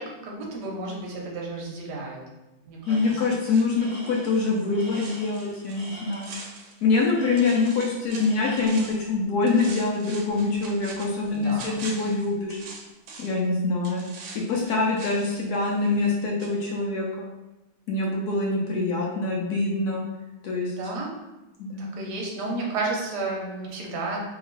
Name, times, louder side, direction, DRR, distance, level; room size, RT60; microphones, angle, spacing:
voice 1, 0.0-2.2 2.7-3.1 11.3-11.8 20.8-21.1 21.8-24.4, right 2 dB, 60° right, -2 dB, 1.2 m, -32 dB
Tools, 2.8-3.4 3.7-6.5 7.1-7.9 8.2-9.1, equal, 25° right, 1.3 m, -45 dB
voice 2, 2.9-6.3 6.8-12.6 13.2-14.1 14.3-17.3 17.9-20.0 20.4-20.7 21.6-22.0, left 3 dB, 70° left, -2 dB, 0.9 m, -25 dB
sound 1, 3.0-7.1 7.4-9.1 9.5-13.5 13.8-16.2 16.4-16.5, right 3 dB, 80° right, 1.4 m, -43 dB
3.0 x 2.9 x 3.9 m, 1.0 s
omnidirectional pair, 2.2 m